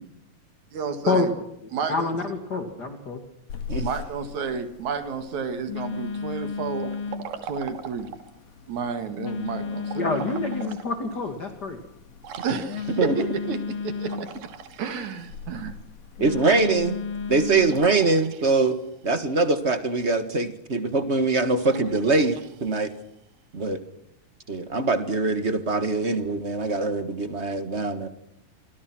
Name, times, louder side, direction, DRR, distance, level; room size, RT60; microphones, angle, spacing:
voice 1, 0.7-1.3 1.7-2.1 3.8-6.9 7.4-8.1 8.7-10.0 12.4-14.3 14.8-15.7, right 5 dB, 60° right, 9 dB, 3.2 m, -31 dB
voice 2, 1.8-3.2 9.9-11.8, left 3 dB, 35° left, 6 dB, 2.5 m, -27 dB
Telephone, 3.5-17.9, left 5 dB, 70° left, 3.8 m, -35 dB
Liquid, 6.8-8.4 9.8-10.9 11.4-11.5 12.2-13.2 14.0-15.7 17.7-19.0 21.6-23.2, right 7 dB, 75° right, 3.4 m, -41 dB
voice 3, 16.2-17.0 17.3-18.8 19.0-22.9 23.5-23.8 24.5-28.1, right 3 dB, 45° right, 10 dB, 0.8 m, -23 dB
27.5 x 25.0 x 6.1 m, 0.78 s
omnidirectional pair, 3.9 m